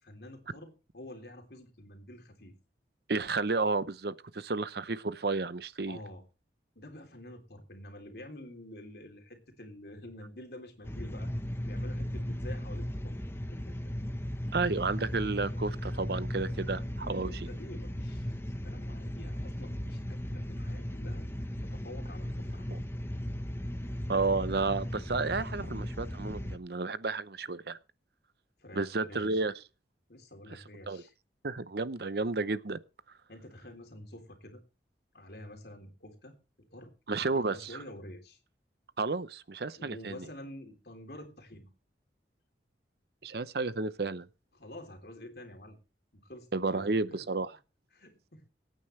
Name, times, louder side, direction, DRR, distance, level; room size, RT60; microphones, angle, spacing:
voice 1, 0.0-2.6 5.9-6.2 6.7-11.3 11.7-13.2 13.5-13.9 15.4-15.5 17.0-21.3 21.6-22.7 28.6-29.4 30.1-31.1 33.3-34.6 35.1-36.3 36.7-36.9 37.2-38.4 39.7-41.7 44.5-45.8 46.1-47.2 47.9-48.4, left 1 dB, 60° left, 3.5 m, -48 dB
voice 2, 3.1-6.0 14.5-17.5 22.7-22.8 24.1-27.8 28.8-29.5 30.5-31.0 31.4-32.8 37.1-37.7 39.0-40.2 43.2-44.3 46.5-47.5, right 3 dB, 60° right, 0.7 m, -32 dB
sound 1, 10.8-26.6, equal, 15° left, 1.0 m, -36 dB
24.0 x 9.2 x 3.2 m
head